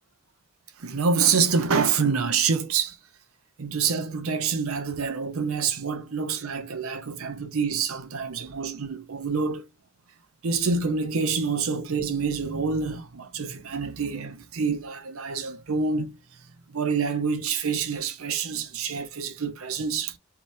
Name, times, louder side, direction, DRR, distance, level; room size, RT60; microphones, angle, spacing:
voice 1, 0.8-3.0 3.6-9.7 10.4-16.2 16.7-20.2, right 5 dB, 80° right, 0.7 m, -27 dB
3.3 x 3.0 x 2.6 m
head